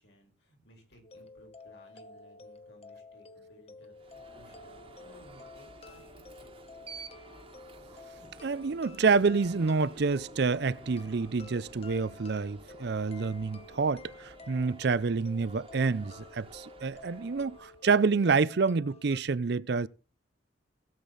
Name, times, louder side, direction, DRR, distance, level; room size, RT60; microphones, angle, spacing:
voice 1, 0.0-6.7, left 1 dB, 65° left, 5.1 m, -59 dB
sound 1, 1.0-19.2, left 3 dB, 35° left, 0.9 m, -51 dB
Alarm, 3.9-17.9, right 3 dB, 30° right, 1.5 m, -52 dB
voice 2, 8.4-19.9, right 4 dB, 60° right, 0.5 m, -28 dB
16.5 x 8.2 x 4.0 m
head